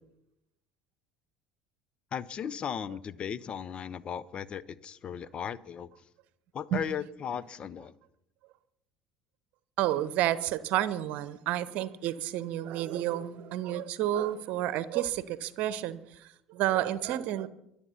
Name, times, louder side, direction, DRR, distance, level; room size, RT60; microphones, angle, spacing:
voice 1, 2.1-5.9 6.5-7.9, left 8 dB, 35° left, 0.7 m, -36 dB
voice 2, 9.8-17.5, right 12 dB, 55° right, 0.9 m, -30 dB
23.5 x 8.7 x 5.6 m
figure-of-eight pair, 65°, 3 cm